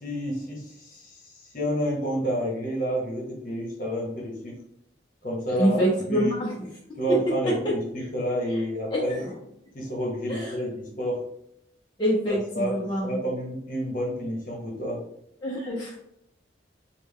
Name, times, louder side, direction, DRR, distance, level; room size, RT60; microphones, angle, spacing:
voice 1, 0.0-4.6 5.2-5.8 6.1-6.3 7.0-9.2 9.7-11.2 12.3-12.7 13.0-15.0, equal, 45° left, -2 dB, 1.0 m, -29 dB
voice 2, 5.6-6.7 7.1-7.2 7.6-8.1 8.5-8.6 8.9-9.4 10.3-10.6 12.0-13.2 15.4-16.0, equal, 25° left, -6 dB, 0.6 m, -26 dB
3.3 x 2.2 x 3.5 m, 0.75 s
head